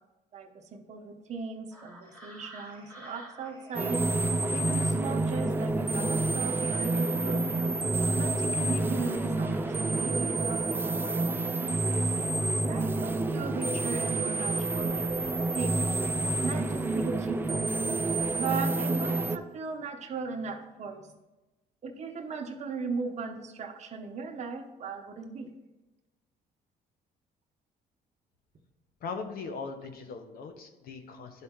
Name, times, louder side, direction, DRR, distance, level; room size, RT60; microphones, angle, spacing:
voice 1, 0.3-4.1 4.5-7.4 8.2-11.8 12.6-15.8 16.4-17.7 18.4-21.2 21.8-25.5, right 4 dB, 40° right, 3 dB, 0.9 m, -37 dB
sound 1, 1.7-11.7 12.0-14.0 14.5-16.8 18.0-18.2 18.7-19.1 19.4-19.7, right 1 dB, 10° left, 2.1 m, -55 dB
sound 2, 3.7-19.4, right 2 dB, 10° right, 0.4 m, -28 dB
voice 2, 29.0-31.4, left 4 dB, 60° left, 7 dB, 1.0 m, -39 dB
10.5 x 4.1 x 3.7 m, 1.1 s
cardioid pair, 110°, 17 cm